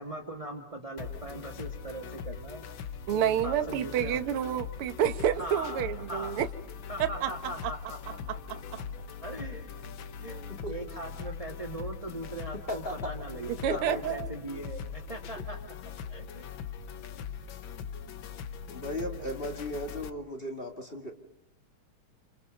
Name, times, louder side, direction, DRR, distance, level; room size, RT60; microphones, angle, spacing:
voice 1, 0.0-2.7 3.1-4.2 5.4-6.4 6.9-15.6 15.8-16.5 17.4-17.5, right 1 dB, 10° right, 2 dB, 2.3 m, -41 dB
sound 1, 1.0-20.1, left 7 dB, 60° left, 1.3 m, -41 dB
voice 2, 3.1-6.5 7.0-7.3 10.3-10.5 13.6-14.3, right 10 dB, 55° right, 9 dB, 1.8 m, -29 dB
voice 3, 12.7-13.1 13.7-14.0 18.7-21.1, left 1 dB, 20° left, 4 dB, 1.9 m, -36 dB
29.5 x 27.5 x 5.3 m, 0.84 s
omnidirectional pair, 3.5 m